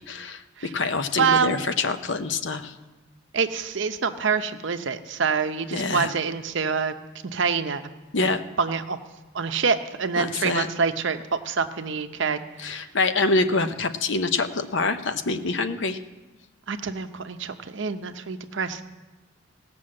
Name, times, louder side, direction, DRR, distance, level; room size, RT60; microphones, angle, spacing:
voice 1, 0.1-2.7 5.7-6.1 8.1-8.4 10.2-10.7 12.6-16.0, left 3 dB, 60° left, 9 dB, 0.7 m, -25 dB
voice 2, 1.2-1.6 3.3-6.9 7.2-7.8 8.2-8.3 8.6-9.0 9.3-12.4 16.7-18.8, right 5 dB, 60° right, 9 dB, 0.7 m, -26 dB
17.0 x 6.1 x 7.6 m, 1.2 s
head